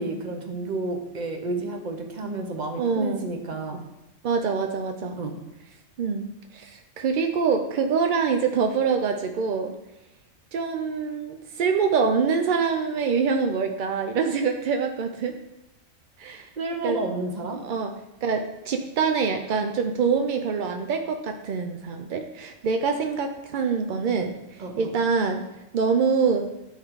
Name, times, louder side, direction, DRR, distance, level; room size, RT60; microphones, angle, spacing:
voice 1, 0.0-3.8 5.2-5.4 16.6-17.6 24.6-24.9, right 2 dB, 40° right, 4 dB, 0.9 m, -31 dB
voice 2, 2.8-3.3 4.2-5.2 6.0-6.3 6.5-9.7 10.5-15.3 16.2-16.5 16.8-17.0 17.6-17.9 18.2-25.5 25.7-26.5, right 5 dB, 70° right, 5 dB, 0.4 m, -25 dB
8.1 x 3.7 x 4.6 m, 0.94 s
omnidirectional pair, 1.3 m